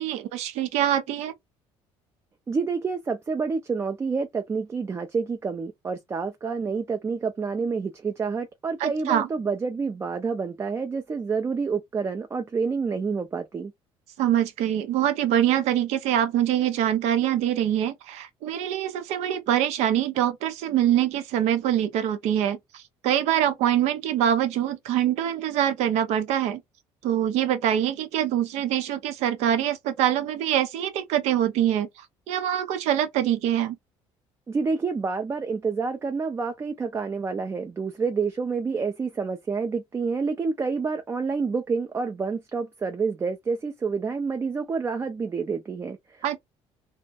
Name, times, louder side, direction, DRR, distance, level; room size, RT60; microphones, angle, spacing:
voice 1, 0.0-1.3 8.8-9.3 14.2-26.6 27.0-31.9 32.3-33.8 46.2-46.4, right 10 dB, 80° right, 0.6 m, -24 dB
voice 2, 2.5-13.7 34.5-46.4, right 5 dB, 25° right, 0.3 m, -28 dB
2.3 x 2.1 x 2.7 m
cardioid pair, 100°, 11 cm